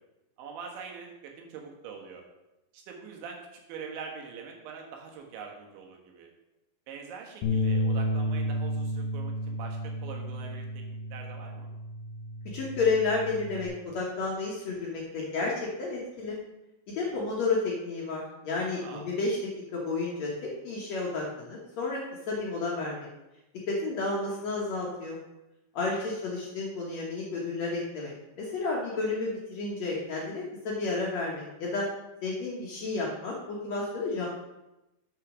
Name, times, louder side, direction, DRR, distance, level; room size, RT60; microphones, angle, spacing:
voice 1, 0.4-2.2 2.7-6.3 6.9-10.8 11.1-11.7 17.1-17.3 18.8-19.1 25.8-26.0, right 6 dB, 80° right, 1 dB, 3.8 m, -43 dB
Bass guitar, 7.4-13.7, left 1 dB, 60° left, 3.0 m, -32 dB
voice 2, 12.5-16.4 17.0-19.4 19.7-22.0 22.3-23.1 23.7-25.2 25.7-31.9 32.2-34.3, left 3 dB, 80° left, -3 dB, 1.5 m, -31 dB
7.5 x 6.4 x 6.2 m, 0.95 s
omnidirectional pair, 5.1 m